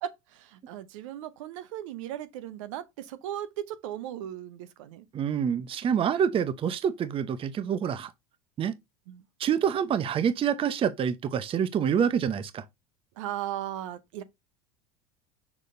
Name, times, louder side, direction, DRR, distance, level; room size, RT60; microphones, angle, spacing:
voice 1, 0.0-5.0 9.1-9.2 13.2-14.2, right 11 dB, 60° right, 0.8 m, -37 dB
voice 2, 5.1-8.1 8.6-8.8 9.4-12.6, right 8 dB, 30° right, 0.7 m, -27 dB
6.5 x 6.0 x 2.6 m
figure-of-eight pair, 70°, 18 cm